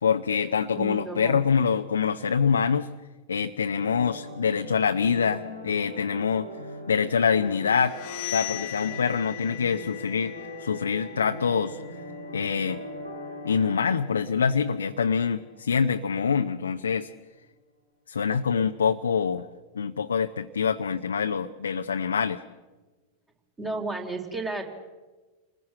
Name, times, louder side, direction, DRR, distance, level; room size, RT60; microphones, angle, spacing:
voice 1, 0.0-2.9 3.3-6.5 6.9-7.9 8.3-10.3 10.6-11.8 12.3-12.8 13.4-17.1 18.1-19.5 19.7-22.4, left 6 dB, 70° left, 6 dB, 0.8 m, -25 dB
voice 2, 0.7-1.4 23.6-24.6, right 3 dB, 20° right, 2 dB, 4.0 m, -32 dB
sound 1, 3.8-16.5, left 1 dB, 90° right, 5.7 m, -41 dB
sound 2, 7.6-13.3, left 20 dB, 45° left, 1.0 m, -40 dB
28.5 x 21.0 x 7.7 m, 1.3 s
figure-of-eight pair, 90°, 0 cm